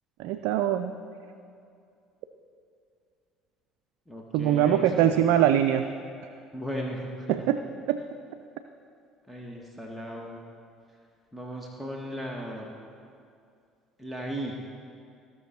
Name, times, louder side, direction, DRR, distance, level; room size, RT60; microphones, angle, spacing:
voice 1, 0.2-0.9 4.3-5.8 7.3-7.6 7.9-8.0, right 11 dB, 75° right, 7 dB, 0.4 m, -23 dB
voice 2, 4.1-5.4 6.5-7.3 9.3-10.4 11.3-12.7 14.0-14.6, equal, 5° left, -1 dB, 1.3 m, -36 dB
16.0 x 6.2 x 4.3 m, 2.4 s
hypercardioid pair, 65°, 0 cm